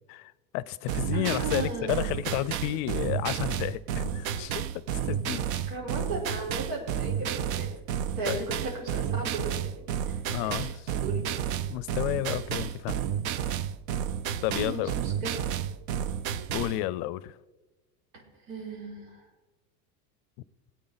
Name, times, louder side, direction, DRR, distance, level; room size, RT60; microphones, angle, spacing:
voice 1, 0.1-5.6 8.3-8.4 10.3-10.9 11.7-13.0 14.4-14.9 16.5-17.3, left 16 dB, 50° left, 0.5 m, -32 dB
sound 1, 0.9-16.8, right 9 dB, 60° right, 0.7 m, -31 dB
voice 2, 1.1-2.1 5.7-7.7 8.1-11.3 14.5-15.3 18.1-19.2, right 2 dB, 85° right, 4.1 m, -36 dB
18.0 x 8.4 x 4.0 m
supercardioid pair, 145°, 48 cm